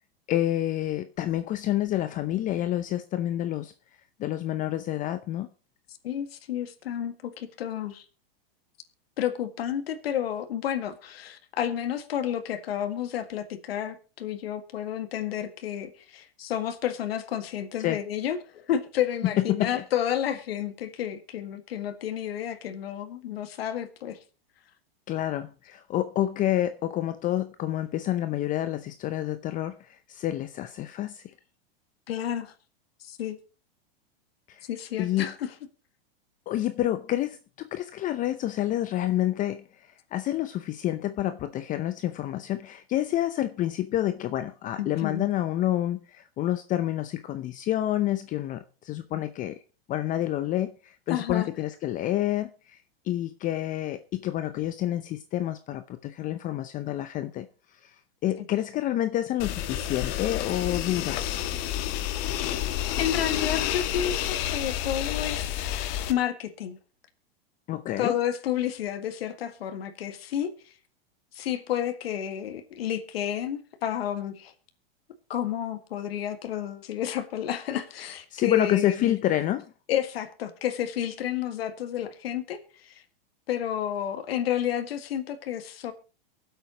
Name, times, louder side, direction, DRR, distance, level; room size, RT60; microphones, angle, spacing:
voice 1, 0.3-3.7 4.2-5.5 17.8-18.0 19.2-19.8 25.1-31.2 34.5-34.6 35.0-35.3 36.5-49.6 49.9-52.8 53.0-57.5 57.8-57.9 58.2-61.4 67.7-68.2 78.3-79.7, left 13 dB, 25° left, 0.6 m, -28 dB
voice 2, 6.0-8.0 9.2-24.2 32.1-32.5 33.0-33.4 34.7-35.5 44.8-45.2 51.1-51.5 58.4-58.5 63.0-65.7 66.1-66.8 68.0-70.5 71.3-74.5 75.3-79.1 79.9-83.0 83.5-85.9, left 10 dB, 80° left, 1.9 m, -31 dB
sound 1, 59.4-66.1, left 12 dB, 50° left, 1.3 m, -29 dB
23.5 x 8.0 x 3.0 m
supercardioid pair, 135°, 30 cm